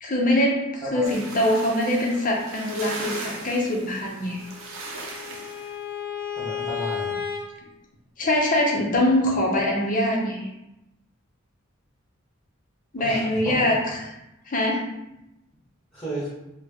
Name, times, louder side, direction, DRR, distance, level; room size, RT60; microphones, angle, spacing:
voice 1, 0.0-4.4 8.2-10.5 12.9-13.8 14.5-14.8, left 1 dB, 40° left, -1 dB, 0.7 m, -23 dB
sound 1, 1.0-5.7, right 3 dB, 70° right, 0.7 m, -38 dB
Bowed string instrument, 4.3-7.4, left 7 dB, 45° right, 1.2 m, -33 dB
voice 2, 6.3-7.1 13.0-13.7 15.9-16.3, right 1 dB, 5° left, -10 dB, 1.4 m, -33 dB
4.3 x 2.2 x 2.9 m, 0.90 s
head